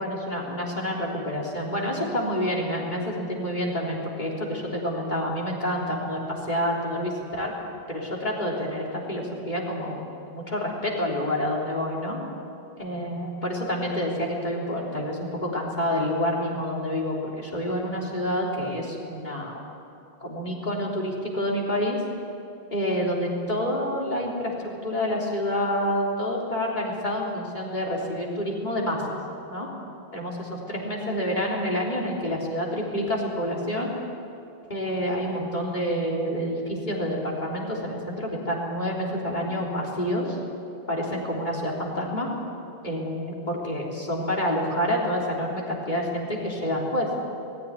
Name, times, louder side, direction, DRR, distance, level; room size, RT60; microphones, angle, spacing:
voice 1, 0.0-7.5 7.9-10.0 10.3-12.2 12.8-19.6 20.2-22.0 22.7-29.2 29.5-29.7 30.1-33.9 34.7-40.4 40.9-42.3 42.8-47.1, equal, 50° left, -3 dB, 3.7 m, -28 dB
19.0 x 15.5 x 9.6 m, 2.7 s
omnidirectional pair, 1.0 m